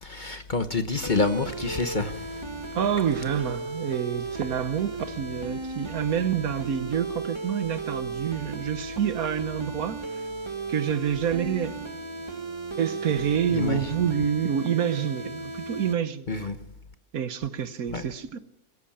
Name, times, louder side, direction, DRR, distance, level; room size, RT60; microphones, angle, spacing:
voice 1, 0.0-2.2 13.5-14.0 16.3-16.6 17.9-18.0, left 3 dB, 35° left, 1.0 m, -27 dB
sound 1, 1.0-15.9, right 3 dB, 20° right, 1.7 m, -36 dB
voice 2, 2.7-10.2 10.7-11.9 12.8-16.5 17.1-18.4, right 8 dB, 70° right, 1.4 m, -28 dB
23.0 x 14.0 x 8.7 m
omnidirectional pair, 1.6 m